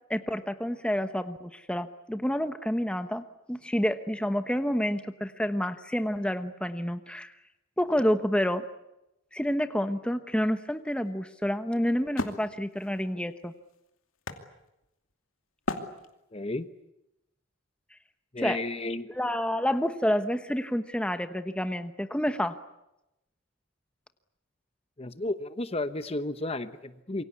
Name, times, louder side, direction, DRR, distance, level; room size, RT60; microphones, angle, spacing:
voice 1, 0.1-7.3 7.8-8.6 9.3-13.5 18.4-18.6 19.2-22.5, equal, 5° left, 9 dB, 1.0 m, -29 dB
Wood, 10.4-15.1 15.6-16.5, left 2 dB, 85° left, 2.6 m, -38 dB
voice 2, 16.3-16.7 18.3-19.1 25.0-27.2, left 2 dB, 30° left, 11 dB, 1.0 m, -32 dB
27.0 x 24.0 x 8.4 m, 0.89 s
head